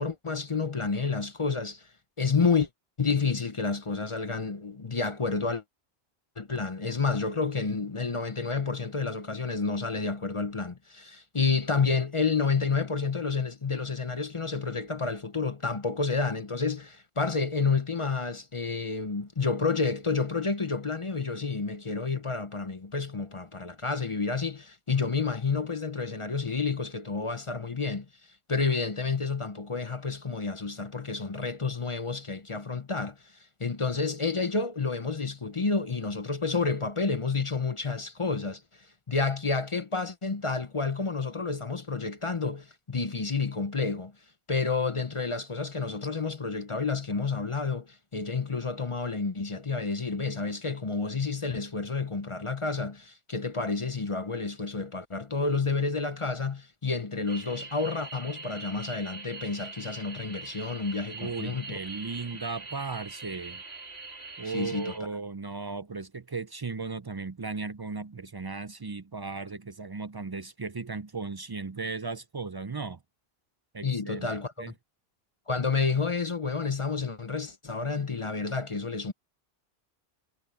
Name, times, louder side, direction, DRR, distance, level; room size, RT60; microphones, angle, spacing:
voice 1, 0.0-1.9 2.2-2.7 3.0-5.6 6.4-28.1 28.5-33.2 33.6-38.6 39.1-44.1 44.5-61.8 64.4-65.0 73.8-74.7 75.5-79.1, left 4 dB, 30° left, 0.8 m, -30 dB
sound 1, 57.3-65.0, right 3 dB, 75° right, 3.3 m, -43 dB
voice 2, 61.1-63.6 64.4-73.0 73.7-74.7, right 4 dB, 35° right, 0.3 m, -36 dB
omnidirectional pair, 1.1 m